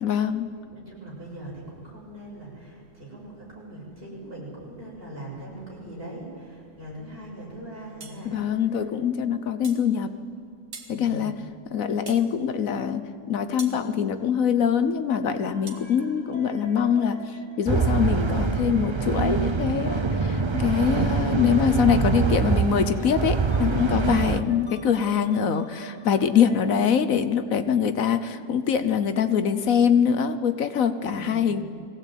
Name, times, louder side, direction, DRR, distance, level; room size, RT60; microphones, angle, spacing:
voice 1, 0.0-0.5 8.2-10.2 10.9-11.4 11.7-17.2 17.6-31.6, left 7 dB, 60° left, 10 dB, 1.2 m, -24 dB
voice 2, 0.7-8.9 10.9-11.3 24.1-24.5 31.1-31.5, right 1 dB, 35° right, -5 dB, 6.9 m, -41 dB
sound 1, 8.0-8.2 9.6-9.9 10.7-11.0 12.1-12.3 13.6-13.8 15.7-15.9, right 4 dB, 75° right, 2.5 m, -41 dB
sound 2, 15.4-26.8, right 3 dB, 15° right, 2.4 m, -44 dB
sound 3, 17.7-24.4, right 5 dB, 50° right, 0.3 m, -24 dB
20.5 x 16.5 x 9.1 m, 2.3 s
omnidirectional pair, 1.7 m